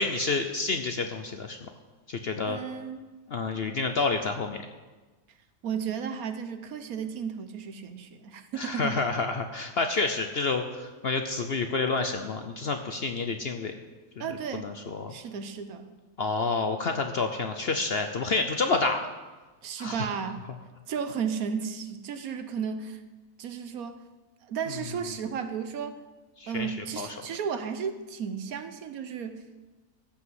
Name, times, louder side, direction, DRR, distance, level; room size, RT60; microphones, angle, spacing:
voice 1, 0.0-1.7 2.1-2.6 3.3-4.6 8.6-13.7 14.5-15.1 16.2-19.1 19.8-20.1 26.4-27.1, left 3 dB, 55° left, 6 dB, 0.7 m, -29 dB
voice 2, 2.5-3.0 5.6-9.0 14.2-14.7 15.1-15.9 19.6-20.4 20.9-23.0 23.4-24.0 24.4-26.0 26.5-29.5, right 7 dB, 70° right, 9 dB, 1.3 m, -34 dB
14.5 x 6.0 x 7.8 m, 1.3 s
omnidirectional pair, 1.7 m